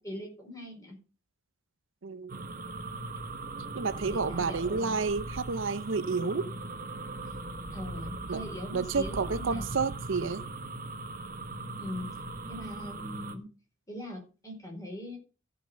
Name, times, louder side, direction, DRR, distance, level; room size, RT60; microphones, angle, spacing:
voice 1, 0.0-1.0 4.1-5.0 7.7-9.8 11.8-12.1 12.5-13.5 13.9-15.2, left 1 dB, 15° left, 4.3 m, -41 dB
voice 2, 2.0-2.4 3.8-6.5 8.3-8.4 8.7-10.4, right 4 dB, 65° right, 0.6 m, -30 dB
sound 1, 2.3-13.3, right 2 dB, 40° right, 1.2 m, -39 dB
13.5 x 5.9 x 6.7 m
head